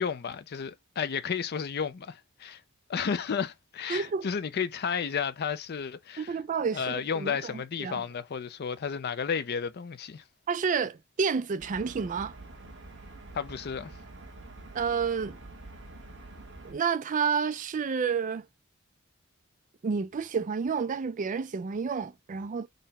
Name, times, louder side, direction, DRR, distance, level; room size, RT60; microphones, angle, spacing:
voice 1, 0.0-2.6 2.9-6.4 6.7-10.2 13.3-13.9, left 6 dB, 50° left, 0.4 m, -32 dB
voice 2, 3.9-4.3 6.2-7.5 7.8-8.0 10.5-12.3 14.7-15.4 16.6-18.5 19.8-22.7, right 5 dB, 40° right, 0.4 m, -30 dB
sound 1, 11.6-16.7, right 2 dB, 60° right, 1.3 m, -47 dB
4.0 x 2.1 x 4.1 m
head